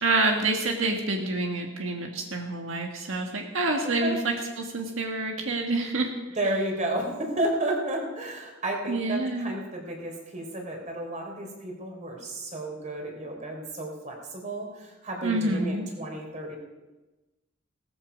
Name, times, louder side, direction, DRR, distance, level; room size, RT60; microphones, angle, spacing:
voice 1, 0.0-6.1 8.9-9.5 15.2-15.9, right 2 dB, 85° right, 2 dB, 1.6 m, -27 dB
voice 2, 6.3-16.6, right 1 dB, 40° right, 2 dB, 3.4 m, -32 dB
17.0 x 14.0 x 5.2 m, 1.1 s
head